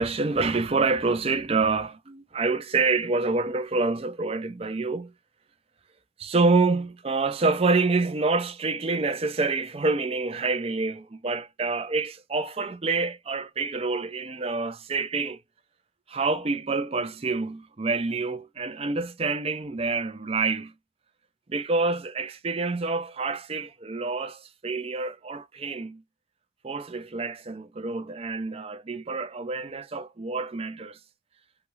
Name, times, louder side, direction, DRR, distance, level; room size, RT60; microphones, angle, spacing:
voice 1, 0.0-5.1 6.2-15.4 16.1-20.7 21.5-26.0 26.6-31.0, right 3 dB, 35° right, 0.5 m, -27 dB
3.2 x 2.3 x 3.1 m
head